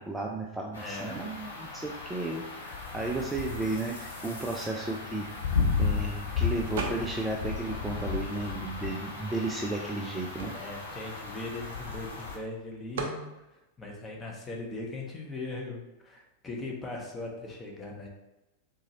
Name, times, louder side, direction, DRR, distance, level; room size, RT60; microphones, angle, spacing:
voice 1, 0.0-5.3 5.8-10.5, right 2 dB, 10° right, -1 dB, 0.4 m, -34 dB
sound 1, 0.7-12.4, left 4 dB, 70° left, 0.7 m, -34 dB
voice 2, 0.8-1.3 10.5-18.1, left 2 dB, 15° left, -1 dB, 0.8 m, -39 dB
sound 2, 6.8-7.3 7.7-8.9 9.6-9.7 9.9-12.1 12.9-13.2, right 3 dB, 60° right, 0.6 m, -38 dB
3.9 x 2.7 x 2.9 m, 0.98 s
figure-of-eight pair, 90°, 0 cm